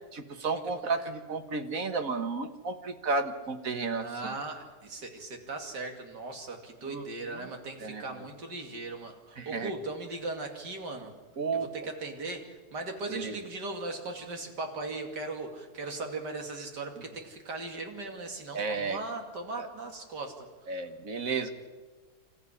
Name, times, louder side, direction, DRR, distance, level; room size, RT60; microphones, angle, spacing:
voice 1, 0.1-4.4 6.9-7.0 7.3-7.5 7.8-8.0 9.4-9.7 11.4-11.7 13.1-13.3 18.5-19.0 19.6-19.7 20.7-21.5, right 4 dB, 55° right, 8 dB, 1.9 m, -32 dB
voice 2, 4.0-11.2 11.5-20.7, right 2 dB, 80° right, 4 dB, 3.1 m, -38 dB
26.5 x 14.5 x 9.9 m, 1.3 s
omnidirectional pair, 1.8 m